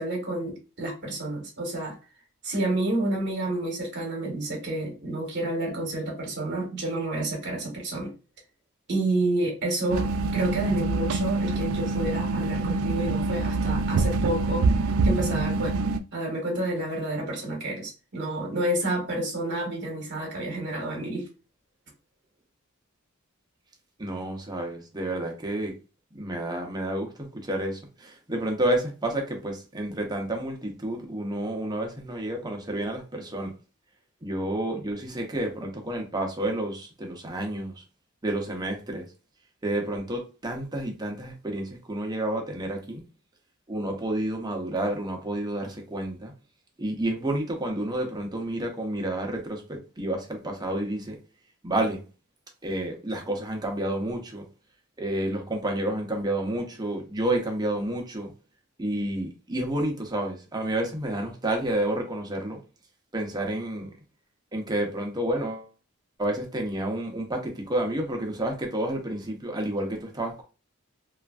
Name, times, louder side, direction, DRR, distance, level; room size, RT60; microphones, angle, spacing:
voice 1, 0.0-1.9 2.4-8.1 8.9-14.7 15.0-15.8 16.1-21.3, right 1 dB, 55° right, 1.0 m, -29 dB
sound 1, 9.9-16.0, right 3 dB, 80° right, 0.4 m, -25 dB
voice 2, 24.0-25.7 26.1-33.5 34.2-37.8 38.2-39.0 39.6-43.0 43.7-46.3 46.8-51.2 51.6-52.0 52.6-54.4 55.0-58.3 58.8-62.6 63.1-63.9 64.5-65.7 66.2-70.4, right 1 dB, 20° right, 0.7 m, -30 dB
3.1 x 2.4 x 2.3 m
head